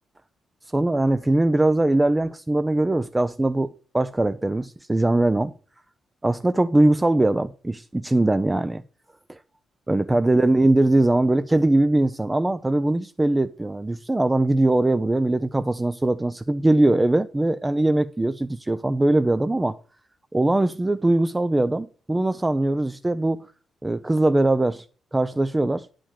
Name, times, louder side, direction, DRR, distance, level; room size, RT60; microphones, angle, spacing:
voice 1, 0.7-5.5 6.2-8.8 9.3-9.4 9.9-19.8 20.3-23.5 23.8-24.9 25.1-25.9, right 2 dB, 15° right, 0.5 m, -21 dB
10.0 x 5.1 x 7.3 m
cardioid pair, 90°, 0 cm